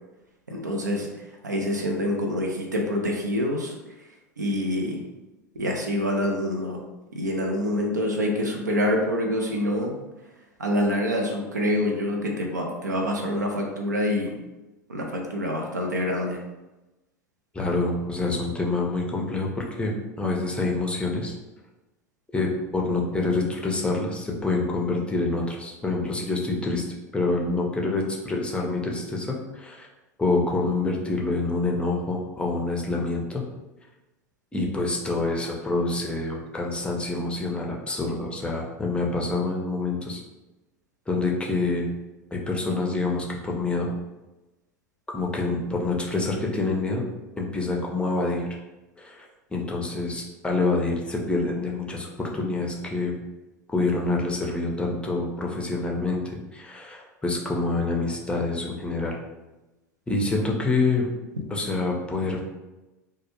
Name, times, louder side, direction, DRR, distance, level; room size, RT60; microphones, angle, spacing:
voice 1, 0.5-3.7 4.4-5.0 5.5-6.8 7.1-10.0 10.6-14.3 14.9-16.4, left 1 dB, 90° right, 0 dB, 0.4 m, -26 dB
voice 2, 17.5-21.4 22.3-26.8 27.1-29.9 30.2-33.4 34.5-40.2 41.1-41.9 42.3-43.9 45.1-47.0 47.4-48.5 49.0-53.1 53.7-56.2 56.5-59.2 60.1-61.1 61.5-62.4, left 3 dB, 10° left, -1 dB, 0.5 m, -26 dB
2.2 x 2.0 x 2.8 m, 1.0 s
figure-of-eight pair, 80°, 9 cm